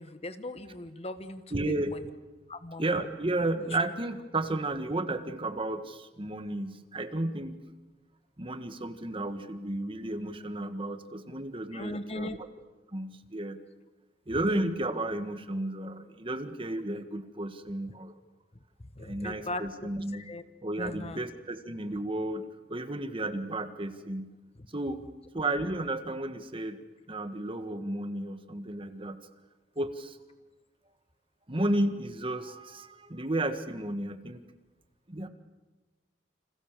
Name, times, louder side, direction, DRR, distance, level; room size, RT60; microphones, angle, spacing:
voice 1, 0.0-2.0 2.5-2.8 11.7-12.4 19.0-20.4 20.8-21.2, left 1 dB, 35° left, 11 dB, 1.3 m, -39 dB
voice 2, 1.5-1.9 2.8-7.6 8.4-12.4 12.9-13.6 14.3-18.1 19.0-20.3 20.6-22.4 22.7-24.3 24.7-25.1 25.3-26.8 27.1-29.2 29.7-30.2 31.5-34.4 35.1-35.3, right 1 dB, 30° right, 9 dB, 1.7 m, -33 dB
29.5 x 26.5 x 7.5 m, 1.1 s
head